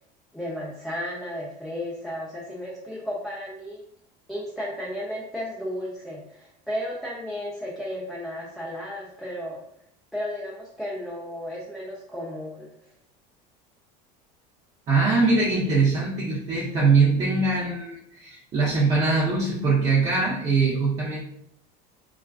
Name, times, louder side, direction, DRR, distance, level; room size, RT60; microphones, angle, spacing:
voice 1, 0.3-3.8 4.3-9.6 10.1-12.7, equal, ahead, -5 dB, 0.4 m, -34 dB
voice 2, 14.9-21.3, right 4 dB, 35° right, -7 dB, 0.7 m, -22 dB
2.3 x 2.3 x 2.3 m, 0.71 s
supercardioid pair, 110°, 20 cm